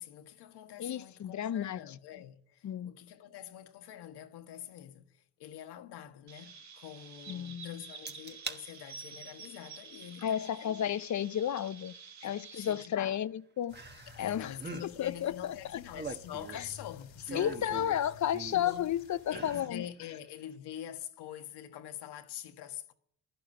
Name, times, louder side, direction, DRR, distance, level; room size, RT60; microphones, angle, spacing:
voice 1, 0.0-10.8 12.2-13.2 14.2-18.0 18.5-18.9 19.3-22.9, left 11 dB, 70° left, 1.5 m, -45 dB
voice 2, 0.8-1.9 2.6-2.9 7.3-7.8 10.2-11.9 12.2-13.8 14.2-14.5 14.8-15.8 16.5-16.6 17.3-19.9, left 10 dB, 45° left, 0.7 m, -33 dB
Chirp tweet, 6.3-12.9, right 5 dB, 40° right, 1.3 m, -50 dB
sound 1, 8.1-8.6 9.1-9.5 11.0-11.1 13.7-14.3 14.5-14.9 15.7-16.7 17.3-18.8 19.2-19.7 20.1-20.2, right 4 dB, 25° right, 1.4 m, -43 dB
sound 2, 13.7-19.6, left 5 dB, 90° left, 3.0 m, -54 dB
11.5 x 11.5 x 9.9 m
supercardioid pair, 75°, 41 cm